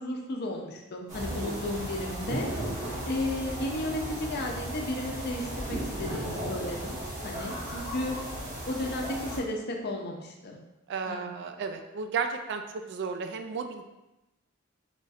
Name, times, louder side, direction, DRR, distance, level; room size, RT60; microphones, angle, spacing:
voice 1, 0.0-2.5 3.1-7.0 7.2-8.2 8.7-10.6 11.1-11.3, left 1 dB, 50° left, 1 dB, 0.5 m, -34 dB
sound 1, 1.1-9.4, right 1 dB, 35° right, 1.1 m, -35 dB
voice 2, 10.9-13.8, right 5 dB, 55° right, 6 dB, 0.3 m, -34 dB
4.1 x 3.0 x 2.4 m, 0.96 s
head